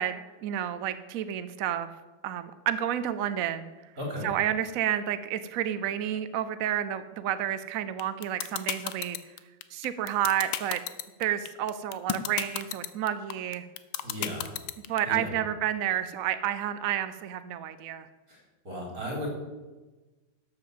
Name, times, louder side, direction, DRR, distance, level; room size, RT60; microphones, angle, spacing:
voice 1, 0.0-1.9 2.2-3.7 4.2-9.2 9.7-10.8 11.2-13.7 14.9-18.1, right 11 dB, 70° right, 12 dB, 0.8 m, -30 dB
voice 2, 4.0-4.3 14.0-14.5 15.0-15.3 18.3-19.3, equal, 45° right, -1 dB, 4.7 m, -35 dB
sound 1, 8.0-15.0, left 12 dB, 90° left, 1.6 m, -31 dB
12.5 x 7.5 x 7.7 m, 1.2 s
omnidirectional pair, 2.2 m